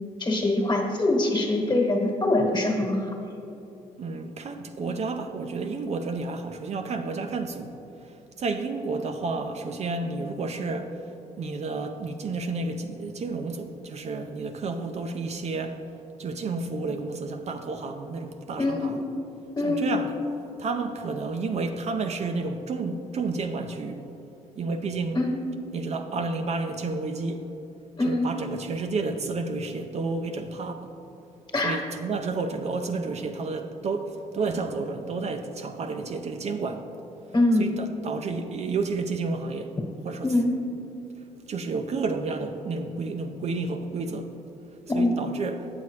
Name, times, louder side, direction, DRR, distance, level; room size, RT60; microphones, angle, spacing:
voice 1, 0.2-3.1 18.6-19.1 19.6-19.9 25.1-25.4 28.0-28.4 31.5-31.8 37.3-37.7 40.2-40.6 44.9-45.2, left 2 dB, 30° left, 1 dB, 1.4 m, -24 dB
voice 2, 4.0-15.8 16.2-19.0 19.6-20.2 20.6-24.0 24.6-25.2 25.7-27.5 28.0-31.0 31.6-36.9 37.6-39.8 40.0-40.3 41.5-44.3 44.9-45.7, right 3 dB, 50° right, 6 dB, 0.5 m, -31 dB
8.3 x 6.9 x 3.2 m, 2.9 s
supercardioid pair, 70°, 15 cm